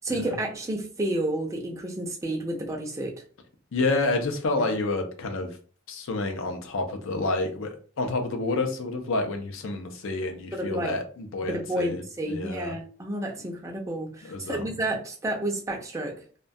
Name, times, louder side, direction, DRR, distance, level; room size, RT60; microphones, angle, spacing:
voice 1, 0.0-3.2 10.5-10.9 11.4-16.2, right 1 dB, 15° right, 1 dB, 0.4 m, -30 dB
voice 2, 3.7-5.5 5.9-12.0 12.3-12.7 14.2-14.6, left 2 dB, 65° left, 5 dB, 0.5 m, -29 dB
2.2 x 2.2 x 2.6 m, 0.42 s
head